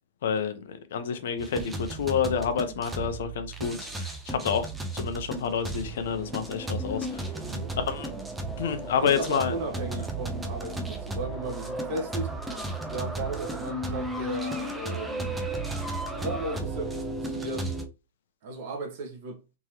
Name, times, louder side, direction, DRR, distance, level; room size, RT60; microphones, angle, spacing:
voice 1, 0.2-4.7 4.9-7.3 7.8-8.1 8.6-9.5, left 7 dB, 70° left, 0.7 m, -29 dB
sound 1, 1.4-17.9, right 2 dB, 5° right, 0.6 m, -34 dB
voice 2, 7.4-7.8 9.0-12.4 12.9-15.3 16.1-17.7 18.4-19.4, right 2 dB, 45° right, 1.2 m, -35 dB
3.6 x 3.0 x 3.0 m
supercardioid pair, 160°, 0 cm